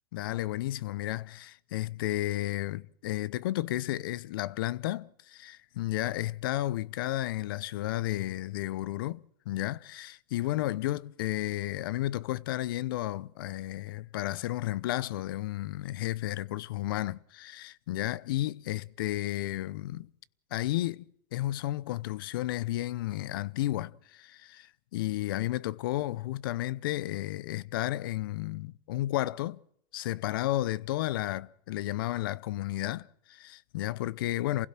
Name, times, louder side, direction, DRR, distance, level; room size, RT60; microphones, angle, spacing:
voice 1, 0.1-20.1 20.5-29.6 29.9-34.7, left 15 dB, 80° left, 0.8 m, -32 dB
28.0 x 16.5 x 7.5 m
supercardioid pair, 120°, 11 cm